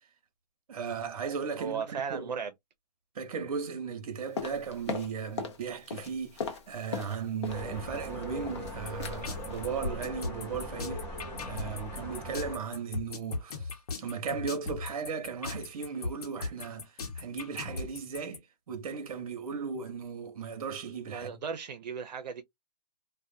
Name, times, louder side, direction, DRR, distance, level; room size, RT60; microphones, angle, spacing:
voice 1, 0.7-2.3 3.1-13.7 14.0-18.4 18.7-21.4, right 6 dB, 55° right, 0.8 m, -36 dB
voice 2, 1.6-2.5 21.1-22.4, right 6 dB, 85° right, 0.5 m, -36 dB
sound 1, 4.4-5.6 5.9-7.7 7.9-8.7 9.0-9.2 9.5-9.7 10.0-10.3 10.5-10.6, left 5 dB, 40° left, 0.6 m, -38 dB
sound 2, 7.5-12.6, equal, 5° left, 0.7 m, -40 dB
sound 3, 8.9-18.4, left 3 dB, 65° left, 0.9 m, -37 dB
2.4 x 2.1 x 2.5 m
hypercardioid pair, 160°, 21 cm